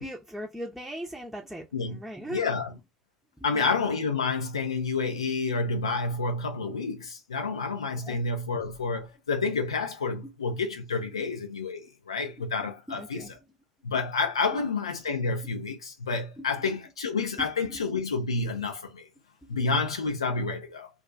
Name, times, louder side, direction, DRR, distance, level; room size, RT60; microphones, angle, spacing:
voice 1, 0.0-2.5 3.5-3.7 6.7-6.8 8.0-8.2 10.2-10.3 11.2-11.3 12.2-12.5 12.9-13.3 14.5-14.7 16.4-16.7 17.4-17.8 19.4-19.8, equal, ahead, 0.7 m, -40 dB
voice 2, 2.3-2.7 3.4-13.3 13.8-19.1 19.5-20.9, left 4 dB, 90° left, 0.6 m, -29 dB
2.4 x 2.2 x 3.9 m
hypercardioid pair, 65°, 3 cm